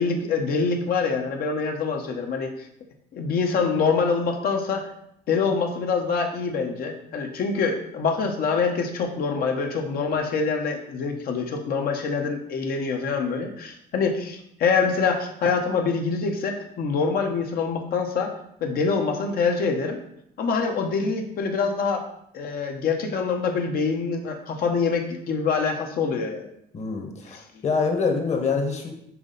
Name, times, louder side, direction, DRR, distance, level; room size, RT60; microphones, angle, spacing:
voice 1, 0.0-2.5 3.1-4.9 5.3-18.3 18.6-20.0 20.4-22.0 22.3-26.5, left 5 dB, 65° left, 3 dB, 1.0 m, -25 dB
voice 2, 26.7-28.9, left 4 dB, 40° left, 3 dB, 1.3 m, -25 dB
6.1 x 4.1 x 3.9 m, 0.75 s
cardioid pair, 110°, 17 cm